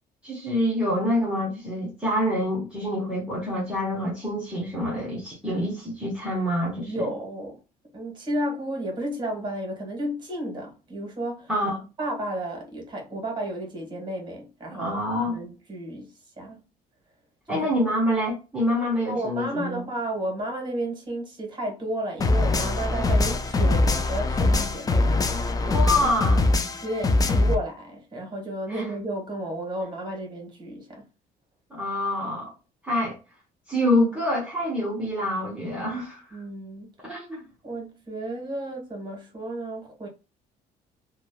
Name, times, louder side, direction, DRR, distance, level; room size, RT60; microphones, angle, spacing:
voice 1, 0.2-7.1 11.5-11.8 14.7-15.4 17.5-19.8 25.6-26.5 28.7-28.9 31.7-32.5 32.8-33.2 33.7-36.2 37.0-37.4, left 1 dB, 5° right, 1.0 m, -26 dB
voice 2, 6.9-7.6 7.9-11.5 12.0-15.0 15.3-16.6 17.5-17.8 19.1-25.1 26.8-31.0 36.3-36.9 37.6-40.1, right 1 dB, 25° right, 1.4 m, -32 dB
sound 1, 22.2-27.6, left 2 dB, 20° left, 0.3 m, -22 dB
3.0 x 2.2 x 2.3 m
cardioid pair, 110°, 17 cm